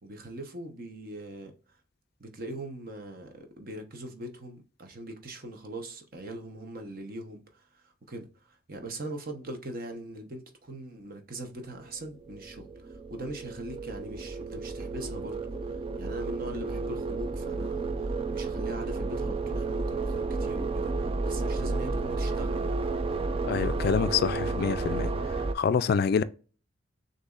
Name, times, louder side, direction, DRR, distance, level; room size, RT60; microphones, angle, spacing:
voice 1, 0.0-1.5 2.2-15.7 16.0-22.8, right 1 dB, 50° right, 1.0 m, -41 dB
sound 1, 11.9-25.5, right 3 dB, 30° right, 0.4 m, -32 dB
voice 2, 23.4-25.2 25.5-26.2, left 6 dB, 55° left, 0.3 m, -26 dB
6.7 x 2.7 x 2.4 m
head